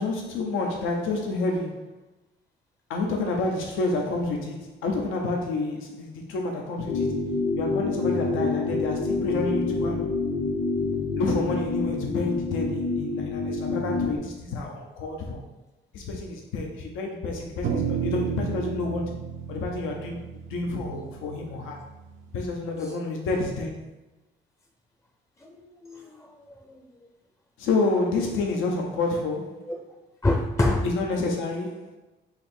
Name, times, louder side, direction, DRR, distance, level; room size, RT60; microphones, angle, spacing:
voice 1, 0.0-2.0 2.9-7.2 7.6-10.1 11.2-15.4 15.9-19.2 19.5-20.2 20.5-21.8 22.3-23.7 27.6-29.7 30.8-32.0, left 3 dB, 90° left, 1 dB, 0.7 m, -29 dB
sound 1, 6.9-14.2, left 3 dB, 50° left, 0.7 m, -27 dB
sound 2, 17.6-22.2, right 7 dB, 90° right, 0.5 m, -32 dB
voice 2, 25.4-26.9 30.2-30.9, left 2 dB, 15° left, 1 dB, 0.5 m, -27 dB
4.1 x 2.8 x 4.2 m, 1.1 s
cardioid pair, 90°, 20 cm